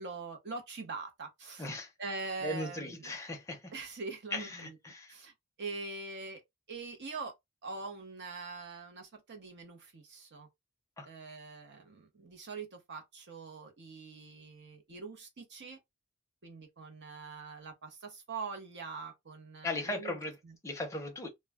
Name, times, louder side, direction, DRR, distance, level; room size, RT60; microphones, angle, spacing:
voice 1, 0.0-1.7 2.0-3.1 3.7-4.8 5.1-5.3 5.6-6.4 6.7-7.3 7.6-10.5 11.0-15.8 16.4-20.6, right 4 dB, 50° right, 0.8 m, -43 dB
voice 2, 1.6-1.9 2.4-3.7 4.3-5.1 11.0-11.1 19.6-20.3 20.6-21.3, left 2 dB, 15° left, 0.7 m, -37 dB
2.3 x 2.1 x 3.4 m
head